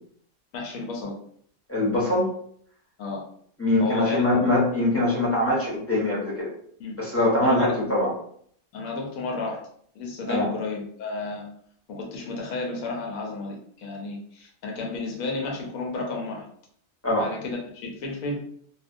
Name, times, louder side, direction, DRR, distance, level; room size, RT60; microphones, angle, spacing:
voice 1, 0.5-1.2 3.0-3.2 3.8-4.2 6.8-7.0 7.4-7.9 8.7-9.6 9.9-11.5 11.9-16.5 17.1-18.4, left 3 dB, 90° left, 0 dB, 1.1 m, -32 dB
voice 2, 1.7-2.3 3.6-6.5 7.0-8.1 10.3-10.5 17.0-17.3, left 1 dB, 20° left, -6 dB, 0.4 m, -23 dB
2.6 x 2.1 x 2.5 m, 0.63 s
omnidirectional pair, 1.4 m